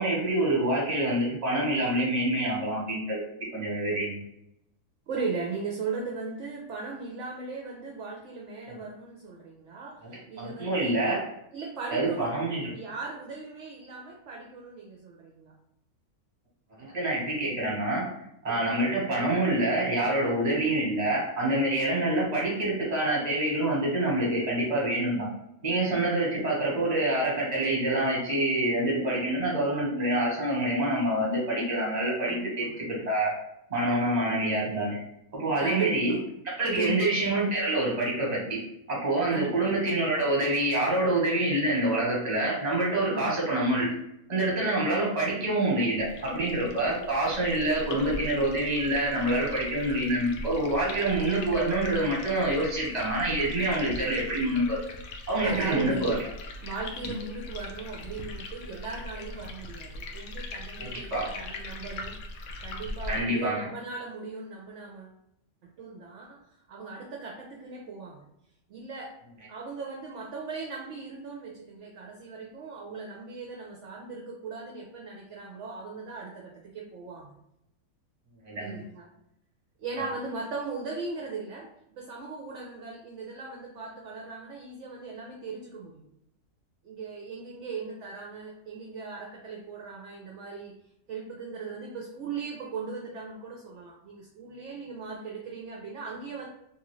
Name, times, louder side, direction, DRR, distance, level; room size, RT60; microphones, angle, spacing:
voice 1, 0.0-3.2 3.5-4.2 8.7-8.8 10.0-10.1 10.4-11.2 11.9-12.7 16.8-18.1 18.4-25.3 25.6-33.3 33.7-35.0 35.3-36.1 36.6-38.6 38.9-43.9 44.3-54.8 55.3-56.2 57.0-57.1 60.8-61.3 63.1-63.7 78.4-78.8, right 1 dB, 30° right, -4 dB, 1.1 m, -26 dB
voice 2, 5.1-10.9 11.5-12.3 12.6-15.5 18.5-18.6 32.3-32.9 35.6-36.2 36.7-37.1 39.3-39.7 43.1-43.3 55.4-56.2 56.6-62.2 62.6-65.1 65.6-66.4 66.7-68.2 68.7-69.1 69.5-77.3 78.6-79.1 79.8-86.1 86.8-90.7 91.1-96.5, right 4 dB, 65° right, -2 dB, 0.8 m, -38 dB
sound 1, 46.0-63.2, left 2 dB, 75° left, 1.0 m, -40 dB
3.0 x 2.5 x 3.0 m, 0.81 s
omnidirectional pair, 1.5 m